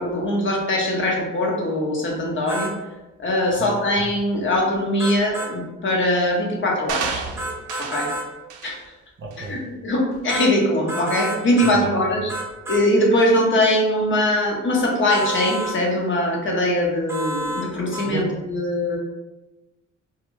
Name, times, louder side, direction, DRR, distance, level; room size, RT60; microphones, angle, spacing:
voice 1, 0.0-2.7 3.2-7.2 7.8-8.1 8.6-8.8 9.5-12.3 12.7-19.0, left 1 dB, 40° left, -1 dB, 0.7 m, -21 dB
sound 1, 2.5-2.7 5.0-5.5 7.4-8.3 10.3-10.5 10.9-11.8 12.3-12.8 15.1-15.8 17.1-17.7 17.9-18.1, right 1 dB, 10° right, 0.7 m, -29 dB
sound 2, 6.9-8.1 8.5-8.8 9.3-9.5, right 5 dB, 90° right, 0.5 m, -30 dB
voice 2, 9.2-9.6 11.7-11.9 18.0-18.2, right 3 dB, 40° right, 0 dB, 0.6 m, -33 dB
2.3 x 2.2 x 3.0 m, 1.1 s
cardioid pair, 90°, 30 cm